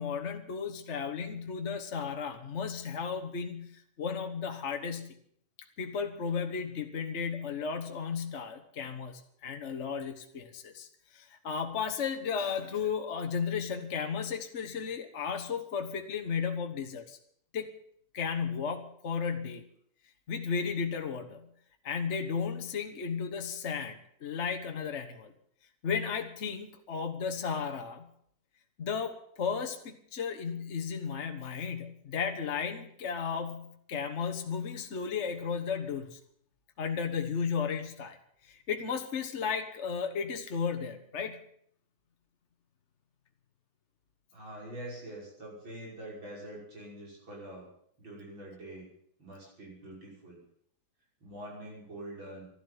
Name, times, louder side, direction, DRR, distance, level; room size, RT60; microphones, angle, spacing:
voice 1, 0.0-3.7 4.0-5.1 5.8-10.9 11.1-17.2 17.5-17.7 18.1-19.7 20.3-21.5 21.8-25.3 25.8-28.1 28.8-36.2 36.8-38.2 38.4-41.4, left 6 dB, 40° left, 6 dB, 1.3 m, -34 dB
voice 2, 44.3-47.7 48.0-48.9 49.2-50.4 51.2-52.5, right 1 dB, 80° right, -2 dB, 6.7 m, -45 dB
12.5 x 11.5 x 9.6 m, 0.67 s
omnidirectional pair, 2.1 m